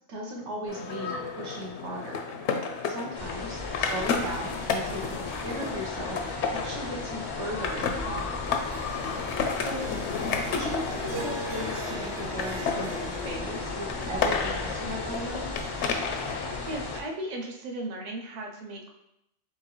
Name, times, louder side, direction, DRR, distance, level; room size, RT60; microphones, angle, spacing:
voice 1, 0.1-2.2 2.8-8.5 9.6-9.8 10.5-15.5, equal, 90° right, -2 dB, 1.3 m, -37 dB
sound 1, 0.7-17.0, left 5 dB, 80° left, 0.9 m, -32 dB
sound 2, 3.1-17.0, left 2 dB, 40° left, 0.3 m, -37 dB
Harp, 8.5-14.9, right 2 dB, 70° right, 0.9 m, -42 dB
voice 2, 16.2-18.9, right 1 dB, 45° right, 1 dB, 0.6 m, -37 dB
4.6 x 3.6 x 3.0 m, 0.83 s
omnidirectional pair, 1.2 m